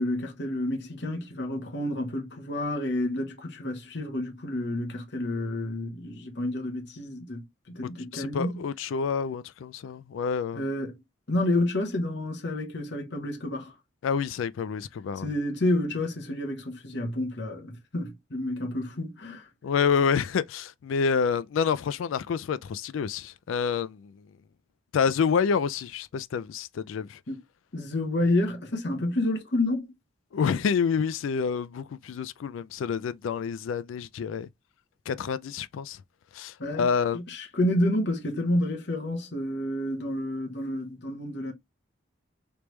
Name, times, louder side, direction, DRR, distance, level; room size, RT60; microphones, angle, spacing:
voice 1, 0.0-7.4 7.7-8.6 10.5-11.0 11.3-13.7 15.2-19.5 27.3-27.4 27.7-29.9 36.6-36.9 37.1-41.5, left 1 dB, 60° left, 1.0 m, -29 dB
voice 2, 8.1-10.6 14.0-15.3 19.6-24.1 24.9-27.2 30.3-34.5 35.1-36.0 36.3-37.2, left 6 dB, 85° left, 0.3 m, -28 dB
3.4 x 3.0 x 3.1 m
head